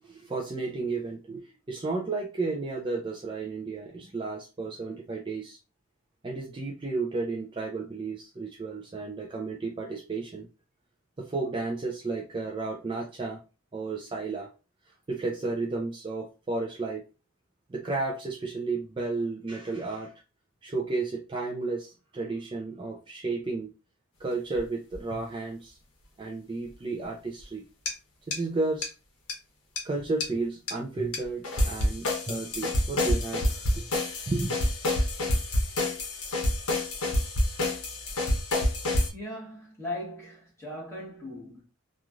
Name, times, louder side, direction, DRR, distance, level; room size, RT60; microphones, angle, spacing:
voice 1, 0.0-5.6 6.2-10.5 11.2-13.4 13.7-14.5 14.9-17.0 17.7-20.1 20.6-23.7 24.2-25.8 26.2-27.6 28.3-28.9 29.8-33.9 34.3-34.5, right 3 dB, 25° right, 0.3 m, -33 dB
sound 1, 24.6-24.7 24.9-25.0 27.9-28.0 28.3-28.4 28.8-28.9 29.3-29.4 29.8-29.9 30.2-30.3 30.7-30.8 31.1-31.2 31.4-39.1, left 1 dB, 85° left, 0.9 m, -27 dB
voice 2, 39.1-41.6, left 1 dB, 10° left, 1.2 m, -38 dB
3.0 x 2.4 x 2.3 m
head